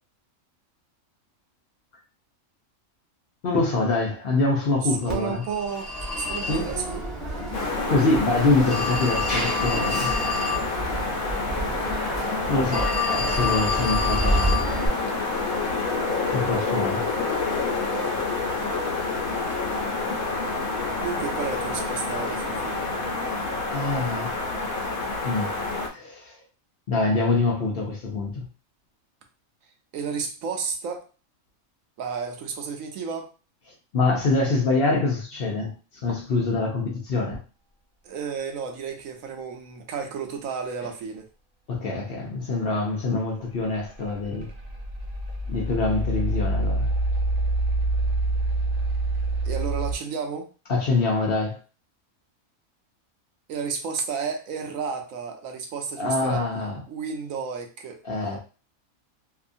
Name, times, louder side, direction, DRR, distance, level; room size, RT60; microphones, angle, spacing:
voice 1, 3.4-5.4 6.5-6.7 7.9-10.1 12.5-14.6 16.3-17.0 23.7-24.4 25.2-25.5 25.9-26.4 26.9-28.5 33.9-35.7 36.0-37.4 41.7-44.5 45.5-46.9 50.7-51.6 56.0-56.8 58.0-58.4, left 3 dB, 55° left, 0.7 m, -25 dB
voice 2, 4.8-7.0 17.9-18.3 21.0-22.9 29.9-31.1 32.0-33.3 38.0-41.3 49.4-50.5 53.5-56.5 56.9-58.0, right 6 dB, 75° right, 1.0 m, -32 dB
Telephone, 5.1-14.9, left 2 dB, ahead, 0.8 m, -28 dB
sound 1, 7.5-25.9, left 3 dB, 90° left, 1.2 m, -28 dB
sound 2, 43.6-49.9, right 2 dB, 45° right, 0.9 m, -26 dB
2.7 x 2.4 x 2.5 m
omnidirectional pair, 1.4 m